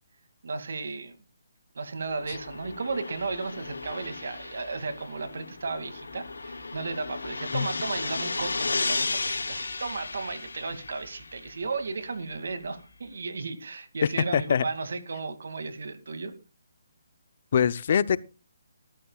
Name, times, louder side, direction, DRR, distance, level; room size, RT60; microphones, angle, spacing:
voice 1, 0.4-1.2 1.7-16.3, right 4 dB, 70° right, 2.4 m, -34 dB
sound 1, 2.0-11.6, left 3 dB, 85° left, 2.9 m, -34 dB
voice 2, 14.3-14.7 17.5-18.2, left 7 dB, 50° left, 0.7 m, -23 dB
19.0 x 13.0 x 2.4 m
hypercardioid pair, 150°, 0 cm